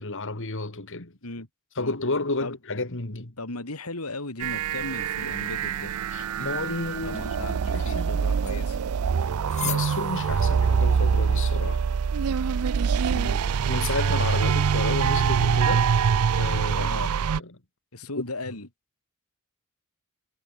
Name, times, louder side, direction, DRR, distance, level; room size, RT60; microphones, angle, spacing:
voice 1, 0.0-1.2 1.8-3.4 6.1-7.2 7.6-8.2 9.6-11.8 13.7-15.9 16.4-17.5 18.2-18.3, left 3 dB, 60° left, 2.5 m, -31 dB
voice 2, 3.4-5.9 7.0-8.8 13.1-13.4 16.8-17.1 17.9-18.7, left 2 dB, 90° left, 4.2 m, -36 dB
sound 1, 4.4-17.4, right 6 dB, 80° right, 0.5 m, -24 dB
sound 2, 7.0-13.0, left 10 dB, 35° left, 4.9 m, -42 dB
head